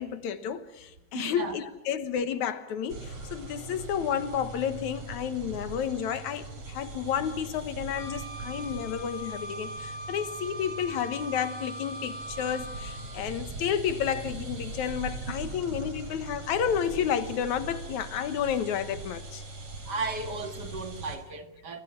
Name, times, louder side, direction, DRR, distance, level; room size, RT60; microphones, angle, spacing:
voice 1, 0.0-19.4, left 8 dB, 80° left, 2.7 m, -31 dB
voice 2, 1.1-1.6 15.4-15.5 19.9-21.8, right 3 dB, 40° right, 2.0 m, -35 dB
sound 1, 2.9-21.2, right 3 dB, 55° right, 5.5 m, -41 dB
Wind instrument woodwind instrument, 8.0-13.1, equal, 50° left, 7.4 m, -41 dB
28.5 x 23.0 x 7.4 m
omnidirectional pair, 3.3 m